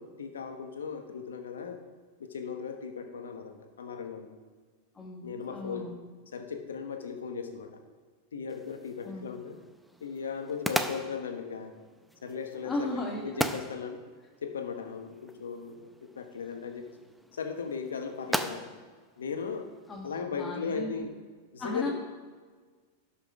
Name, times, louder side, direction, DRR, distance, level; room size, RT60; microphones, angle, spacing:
voice 1, 0.0-1.8 2.2-4.3 5.2-5.9 6.3-7.8 8.3-9.6 10.0-11.7 12.2-14.0 14.4-16.9 17.3-18.7 19.2-19.7 20.0-21.1 21.5-21.9, left 6 dB, 85° left, 6 dB, 1.2 m, -37 dB
voice 2, 4.9-6.0 9.0-9.2 12.6-13.4 19.9-20.9 21.6-21.9, left 2 dB, 20° left, 0 dB, 1.3 m, -36 dB
sound 1, 8.5-20.2, equal, ahead, 0.6 m, -39 dB
11.5 x 5.8 x 4.8 m, 1.5 s
hypercardioid pair, 100°, 0 cm